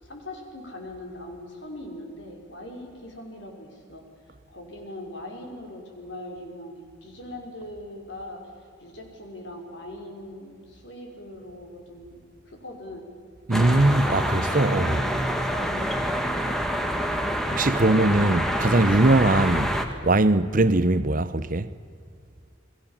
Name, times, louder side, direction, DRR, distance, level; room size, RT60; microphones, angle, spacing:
voice 1, 0.0-4.0 4.5-8.4 8.8-12.2 12.5-13.1 13.6-16.7, left 1 dB, 65° left, 5.6 m, -41 dB
sound 1, 13.5-19.8, equal, ahead, 1.8 m, -26 dB
voice 2, 13.5-15.0 17.5-19.8 20.0-21.7, right 2 dB, 45° right, 1.0 m, -21 dB
29.5 x 21.5 x 7.4 m
head